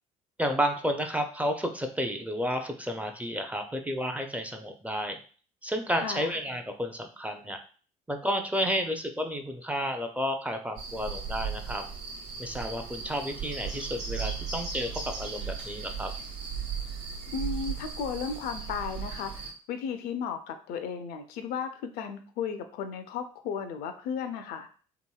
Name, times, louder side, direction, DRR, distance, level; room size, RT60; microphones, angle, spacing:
voice 1, 0.4-5.2 5.6-7.6 8.1-11.8 12.4-16.1, equal, 10° right, 5 dB, 0.4 m, -31 dB
voice 2, 6.0-6.3 17.3-19.3 19.7-24.7, left 6 dB, 60° left, 8 dB, 0.4 m, -34 dB
sound 1, 10.8-19.5, right 6 dB, 70° right, 0.9 m, -36 dB
2.9 x 2.6 x 2.2 m, 0.40 s
hypercardioid pair, 55°, 18 cm